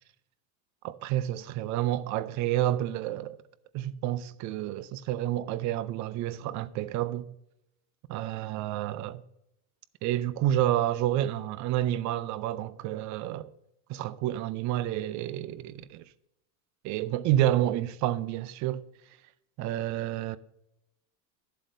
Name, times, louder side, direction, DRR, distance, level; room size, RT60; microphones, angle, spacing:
voice 1, 0.8-3.4 3.7-7.2 8.1-9.2 10.0-13.5 13.9-16.0 16.8-18.8 19.6-20.4, right 13 dB, 40° right, 0.5 m, -29 dB
12.0 x 7.7 x 2.6 m
supercardioid pair, 120°, 48 cm